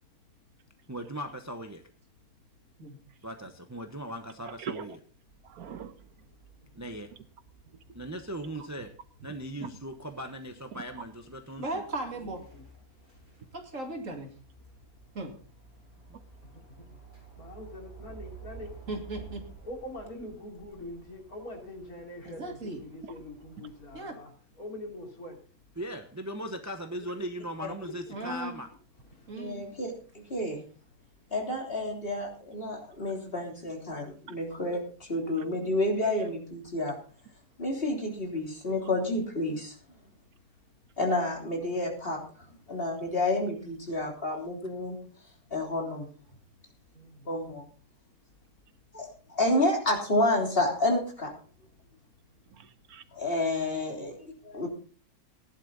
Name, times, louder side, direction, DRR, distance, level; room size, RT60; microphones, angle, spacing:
voice 1, 0.9-1.8 3.2-5.0 6.7-7.1 7.9-8.9 9.2-11.8 25.8-28.7, right 1 dB, 15° right, 7 dB, 0.9 m, -38 dB
voice 2, 4.4-5.0 5.4-6.1 9.6-9.7 10.7-10.8 34.3-34.4 35.4-35.5 52.5-53.0, right 7 dB, 85° right, 12 dB, 1.5 m, -42 dB
sound 1, 5.2-24.0, right 5 dB, 35° right, 5.4 m, -53 dB
voice 3, 11.6-12.4 13.5-14.3 15.1-15.3 18.9-19.4 22.2-22.8 23.9-24.2 28.1-28.6 29.3-29.7, right 2 dB, 60° right, 3 dB, 2.8 m, -37 dB
voice 4, 12.1-12.6 17.4-18.7 19.6-24.3 24.6-25.4 27.8-28.2 46.9-47.4, left 1 dB, 75° left, 1 dB, 3.8 m, -43 dB
voice 5, 29.3-30.6 31.3-37.0 37.6-39.7 41.0-42.2 42.7-45.0 45.5-46.1 47.3-47.7 48.9-51.3 53.1-54.7, left 1 dB, 40° left, 1 dB, 3.6 m, -30 dB
16.0 x 11.0 x 4.0 m, 0.40 s
omnidirectional pair, 1.5 m